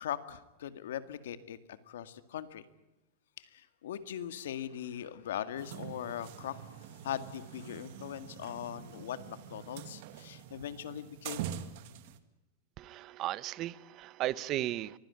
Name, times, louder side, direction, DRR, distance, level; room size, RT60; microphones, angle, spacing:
voice 1, 0.0-2.6 3.4-11.4, left 10 dB, 80° left, 12 dB, 2.0 m, -40 dB
sound 1, 5.6-12.2, right 10 dB, 50° right, 1.9 m, -45 dB
voice 2, 12.8-15.0, right 14 dB, 30° right, 20 dB, 0.8 m, -35 dB
24.5 x 16.5 x 9.8 m, 0.95 s
supercardioid pair, 160°, 0 cm